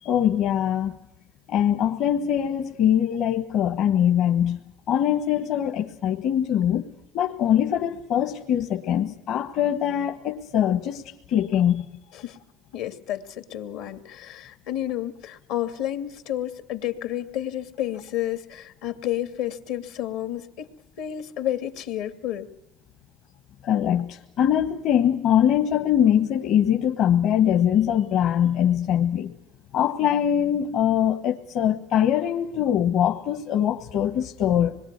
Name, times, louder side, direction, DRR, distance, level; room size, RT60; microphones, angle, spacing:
voice 1, 0.0-1.0 1.5-4.6 4.9-11.0 11.3-11.9 23.6-29.3 29.7-34.8, left 10 dB, 60° left, 1.5 m, -22 dB
voice 2, 12.7-20.7 21.0-22.5, left 12 dB, 80° left, 2.3 m, -31 dB
26.0 x 21.5 x 8.3 m
cardioid pair, 115°, 0 cm